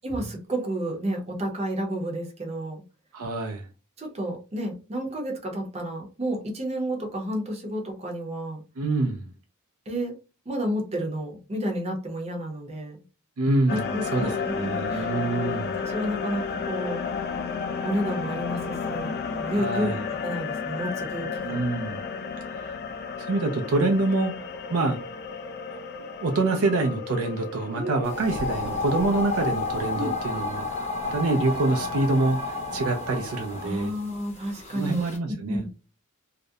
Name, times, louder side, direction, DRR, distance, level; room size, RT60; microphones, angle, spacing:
voice 1, 0.0-2.8 4.0-8.6 9.9-10.2 10.5-13.0 13.7-15.1 15.8-17.0 17.8-21.6 27.7-28.2 29.9-30.1 33.6-35.7, equal, 30° right, 0.7 m, -31 dB
voice 2, 3.1-3.6 8.8-9.3 13.4-15.7 19.5-20.0 21.4-22.0 22.6-22.7 23.2-25.0 26.2-33.9 34.7-35.7, right 2 dB, 65° right, 0.4 m, -26 dB
sound 1, 13.7-31.1, left 5 dB, 45° left, 0.4 m, -33 dB
sound 2, 28.0-35.2, left 3 dB, 30° left, 0.9 m, -32 dB
2.4 x 2.0 x 2.6 m
head